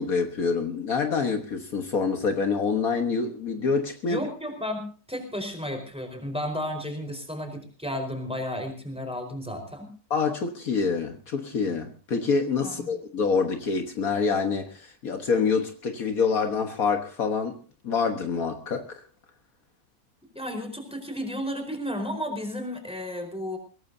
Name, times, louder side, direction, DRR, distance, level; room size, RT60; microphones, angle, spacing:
voice 1, 0.0-4.2 10.1-17.6 17.8-19.0, left 5 dB, 65° left, 1.8 m, -26 dB
voice 2, 4.1-9.9 12.6-12.9 20.3-23.6, left 1 dB, 5° right, 4.4 m, -33 dB
23.0 x 17.5 x 2.7 m
omnidirectional pair, 1.6 m